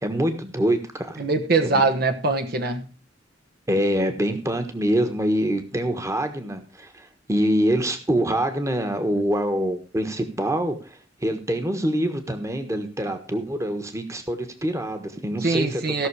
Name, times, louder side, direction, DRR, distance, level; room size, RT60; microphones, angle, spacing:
voice 1, 0.0-1.3 1.6-1.8 3.7-16.1, right 1 dB, 15° right, 7 dB, 1.4 m, -25 dB
voice 2, 1.2-2.9 15.4-16.1, right 3 dB, 55° right, 5 dB, 1.1 m, -22 dB
16.0 x 6.3 x 4.8 m, 0.35 s
head